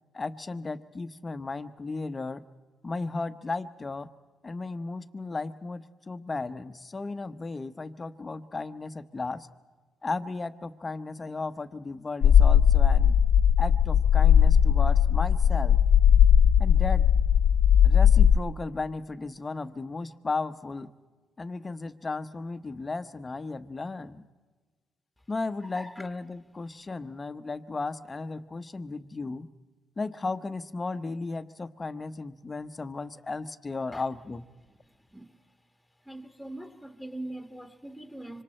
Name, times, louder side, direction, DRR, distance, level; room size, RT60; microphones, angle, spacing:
voice 1, 0.1-2.4 2.8-4.1 4.4-9.5 10.0-13.1 13.6-15.8 16.6-17.1 17.8-20.9 21.4-24.2 25.3-29.5 30.0-34.4, left 3 dB, 25° left, 1.0 m, -35 dB
sound 1, 12.2-18.4, left 8 dB, 70° left, 0.6 m, -19 dB
voice 2, 25.7-26.1 33.9-34.0 35.1-35.3 36.1-38.4, right 1 dB, ahead, 1.7 m, -41 dB
25.5 x 25.5 x 4.4 m
cardioid pair, 90°, 0 cm